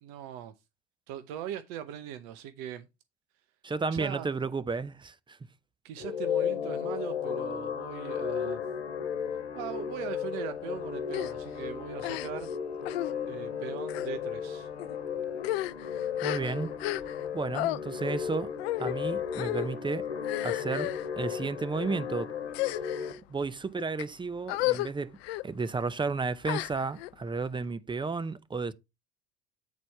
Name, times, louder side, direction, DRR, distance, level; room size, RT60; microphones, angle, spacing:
voice 1, 0.0-0.5 1.1-2.9 3.9-4.3 5.8-8.6 9.5-12.5 13.2-14.7, right 10 dB, 65° right, 0.8 m, -40 dB
voice 2, 3.6-5.4 16.2-16.8 17.3-18.5 18.8-20.1 20.4-22.3 23.3-25.2 25.4-28.7, right 4 dB, 15° right, 0.6 m, -33 dB
sound 1, 6.0-23.1, left 7 dB, 90° left, 1.2 m, -34 dB
sound 2, 11.1-11.3 12.0-12.5 12.8-13.1 13.8-14.1 14.8-15.0 15.3-17.3 17.5-17.8 18.6-18.9 19.3-19.7 20.2-21.1 21.7-22.0 22.5-23.2 23.8-24.0 24.5-24.9 25.2-25.4 26.4-27.1, left 17 dB, 75° left, 0.5 m, -33 dB
8.3 x 4.3 x 4.5 m
hypercardioid pair, 70°, 31 cm